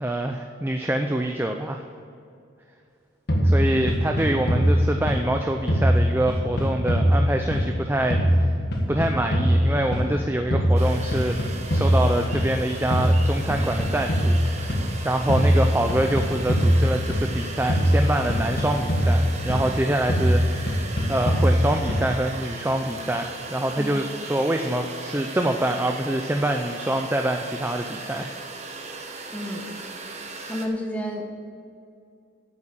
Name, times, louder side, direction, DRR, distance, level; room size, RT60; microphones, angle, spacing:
voice 1, 0.0-1.8 3.4-8.5 8.9-11.4 11.7-20.8 21.1-28.4, right 1 dB, 10° right, 4 dB, 0.5 m, -25 dB
sound 1, 3.3-5.4 5.7-7.8 8.1-10.2 10.5-12.6 12.9-14.9 15.3-17.4 17.7-19.8 20.1-22.2, equal, 50° left, 1.7 m, -22 dB
voice 2, 3.3-3.9 23.8-24.0 29.3-29.7 30.4-31.3, equal, 5° left, 1 dB, 1.2 m, -31 dB
sound 2, 10.8-30.7, right 3 dB, 35° right, 1.0 m, -38 dB
9.0 x 8.2 x 7.6 m, 2.5 s
head